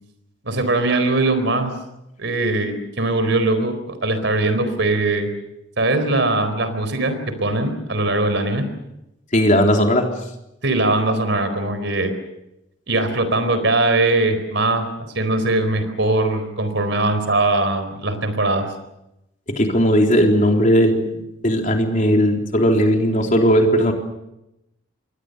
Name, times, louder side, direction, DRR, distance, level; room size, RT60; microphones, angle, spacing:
voice 1, 0.4-1.7 2.2-3.7 4.0-5.3 5.8-8.7 10.6-12.1 12.9-18.7, right 2 dB, 60° right, 10 dB, 4.3 m, -20 dB
voice 2, 9.3-10.1 19.6-21.2 21.4-23.9, equal, 40° left, 2 dB, 3.7 m, -17 dB
28.0 x 23.0 x 6.8 m, 0.87 s
head